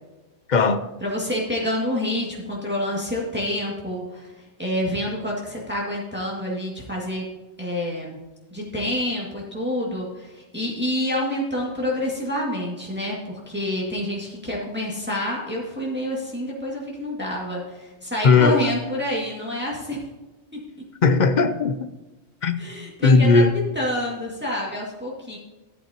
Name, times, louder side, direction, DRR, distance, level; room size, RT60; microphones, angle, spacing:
voice 1, 0.5-0.8 18.2-18.6 21.0-21.9 22.4-22.6 23.0-23.6, left 4 dB, 50° left, 0.7 m, -17 dB
voice 2, 1.0-4.3 4.6-7.2 7.6-8.2 8.5-20.0 22.6-23.4 23.7-25.4, left 1 dB, 10° right, 2.2 m, -28 dB
15.5 x 8.6 x 2.9 m
omnidirectional pair, 1.2 m